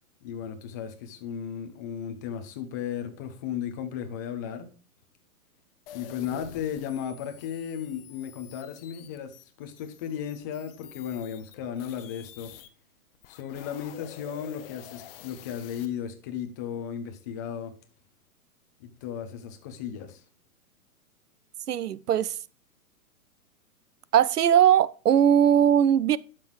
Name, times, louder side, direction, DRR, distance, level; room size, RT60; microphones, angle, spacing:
voice 1, 0.2-4.7 5.9-12.5 13.3-17.7 18.8-20.2, left 8 dB, 15° left, 0.4 m, -35 dB
sound 1, 5.9-12.7 13.1-15.9, left 11 dB, 40° left, 0.8 m, -49 dB
voice 2, 21.7-22.3 24.1-26.2, right 9 dB, 90° right, 0.5 m, -20 dB
11.5 x 6.0 x 3.1 m
hypercardioid pair, 125°, 45 cm